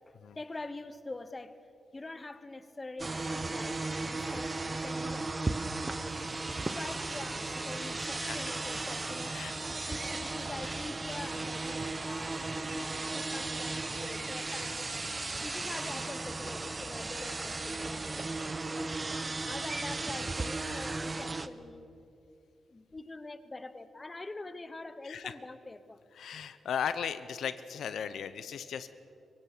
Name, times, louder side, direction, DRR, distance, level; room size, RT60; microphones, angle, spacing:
voice 1, 0.1-1.6 1.9-5.3 6.7-12.5 12.7-14.9 15.4-18.9 19.4-21.9 22.7-26.0, left 2 dB, 25° left, 12 dB, 1.0 m, -45 dB
sound 1, 3.0-21.5, right 3 dB, 25° right, 0.9 m, -36 dB
voice 2, 8.2-8.6 9.3-9.5 9.8-10.0 25.0-25.3 26.2-28.9, left 8 dB, 75° left, 13 dB, 0.7 m, -37 dB
24.0 x 16.5 x 6.7 m, 2.7 s
cardioid pair, 90°, 0 cm